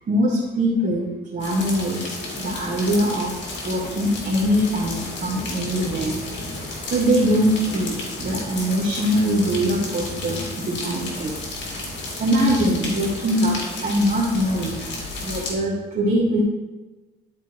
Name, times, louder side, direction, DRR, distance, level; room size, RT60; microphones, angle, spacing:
voice 1, 0.1-2.1 2.4-3.3 3.6-6.1 6.9-11.3 12.1-14.8 15.2-16.4, equal, 45° right, -6 dB, 1.9 m, -22 dB
sound 1, 1.4-15.5, left 2 dB, 65° left, 2.0 m, -32 dB
12.0 x 4.4 x 3.2 m, 1.2 s
cardioid pair, 90°, 20 cm